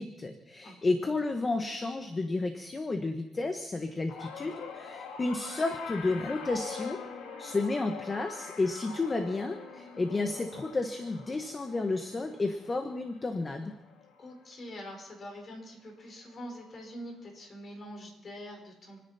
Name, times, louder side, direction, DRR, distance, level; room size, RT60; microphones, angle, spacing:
voice 1, 0.0-7.0 7.4-13.7, left 3 dB, 30° left, 6 dB, 1.4 m, -32 dB
sound 1, 4.1-14.5 14.9-15.3 16.4-16.5, left 5 dB, 90° left, 1.9 m, -44 dB
voice 2, 14.2-19.1, equal, 45° left, 3 dB, 5.1 m, -44 dB
29.5 x 10.5 x 4.4 m, 0.92 s
cardioid pair, 90°, 0 cm